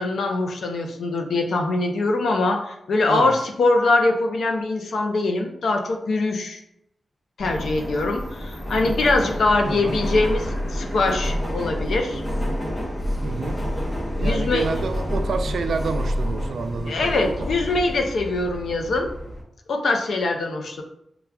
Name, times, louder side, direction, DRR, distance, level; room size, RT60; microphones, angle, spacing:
voice 1, 0.0-6.6 7.4-12.2 14.2-14.7 16.9-19.1 19.7-20.8, left 2 dB, 80° left, 4 dB, 0.6 m, -23 dB
Subway metro underground, 7.4-19.4, equal, 25° left, 0.7 m, -28 dB
voice 2, 13.2-13.6 14.2-17.5, right 4 dB, 75° right, 7 dB, 0.4 m, -29 dB
6.7 x 2.3 x 2.3 m, 0.79 s
wide cardioid pair, 170°, 0 cm